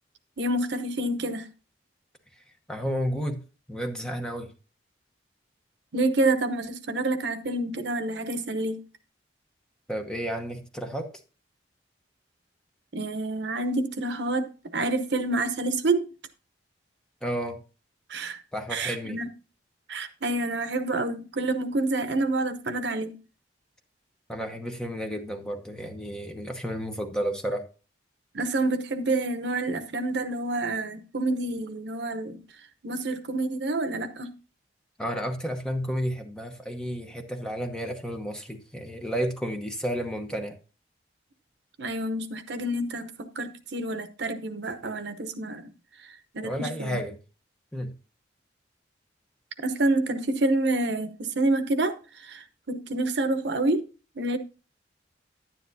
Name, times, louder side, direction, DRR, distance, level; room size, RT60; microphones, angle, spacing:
voice 1, 0.4-1.5 5.9-8.8 12.9-14.5 14.7-16.0 18.1-18.4 18.7-19.3 19.9-23.2 28.3-32.4 32.8-34.3 41.8-45.7 46.0-47.0 49.6-53.8 54.2-54.4, right 2 dB, 70° right, 0.9 m, -28 dB
voice 2, 2.4-3.4 3.7-4.5 9.9-11.1 17.2-17.6 18.5-19.2 24.3-27.7 35.0-40.6 46.4-47.2 47.7-47.9, equal, 5° left, 0.9 m, -32 dB
10.5 x 9.7 x 2.7 m
head